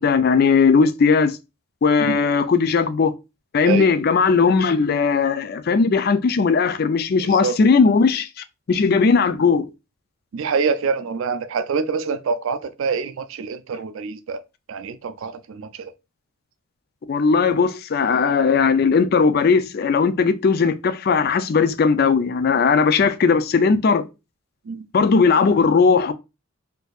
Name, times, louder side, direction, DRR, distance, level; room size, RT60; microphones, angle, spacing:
voice 1, 0.0-1.4 1.8-3.1 3.5-9.7 17.1-24.0 24.9-26.1, left 5 dB, 45° left, 0.3 m, -18 dB
voice 2, 7.2-7.6 10.3-14.4 14.7-15.9 24.7-24.9, right 5 dB, 65° right, 0.4 m, -26 dB
4.4 x 2.7 x 2.3 m
head